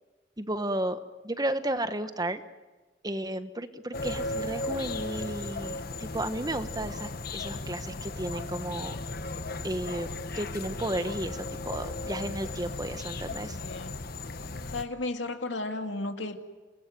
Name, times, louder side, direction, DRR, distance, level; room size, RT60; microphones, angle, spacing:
voice 1, 0.4-2.4 3.0-9.0 9.6-13.6, right 1 dB, 20° right, 10 dB, 1.2 m, -33 dB
sound 1, 3.9-14.9, left 2 dB, 55° left, 1.4 m, -36 dB
voice 2, 13.5-14.0 14.7-16.4, left 2 dB, 80° left, 6 dB, 2.3 m, -34 dB
29.0 x 20.0 x 9.4 m, 1.2 s
head